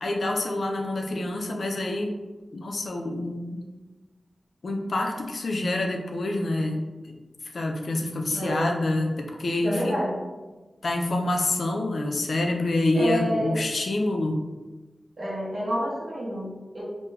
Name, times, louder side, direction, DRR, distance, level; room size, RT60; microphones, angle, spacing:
voice 1, 0.0-2.1 2.5-3.8 4.6-7.2 7.5-10.0 10.8-14.4, left 2 dB, 65° left, 2 dB, 0.3 m, -27 dB
voice 2, 8.3-8.7 9.6-10.2 12.9-13.6 15.2-16.8, equal, 45° right, -4 dB, 0.6 m, -28 dB
2.3 x 2.2 x 3.1 m, 1.2 s
wide cardioid pair, 100°, 0 cm